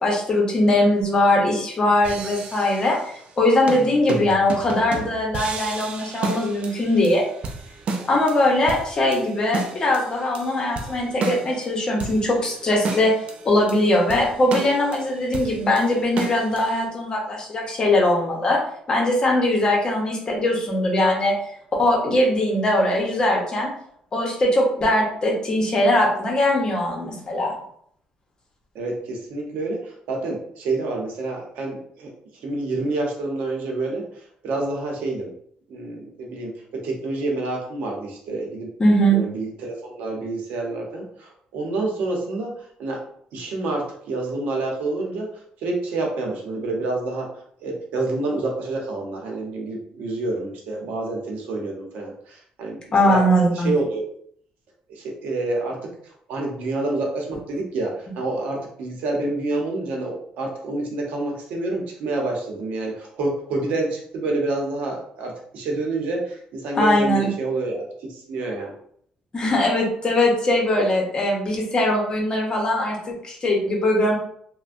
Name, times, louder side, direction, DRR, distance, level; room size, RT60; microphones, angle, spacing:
voice 1, 0.0-7.2 8.0-13.1 13.4-18.6 18.9-21.3 21.8-23.7 24.1-27.5 38.8-39.2 52.9-53.7 66.7-67.3 69.3-74.2, left 1 dB, 30° left, -1 dB, 0.9 m, -21 dB
sound 1, 2.0-3.3 3.7-16.8, right 4 dB, 50° right, 0.4 m, -33 dB
voice 2, 28.7-32.1 32.4-35.3 35.7-36.5 36.8-38.7 39.1-42.5 42.8-43.0 43.3-45.3 45.6-47.3 47.6-52.8 53.0-54.0 54.9-55.8 56.0-67.8 68.1-68.7, right 2 dB, 80° right, 0 dB, 0.7 m, -28 dB
3.3 x 2.1 x 2.5 m, 0.65 s
cardioid pair, 125°, 3 cm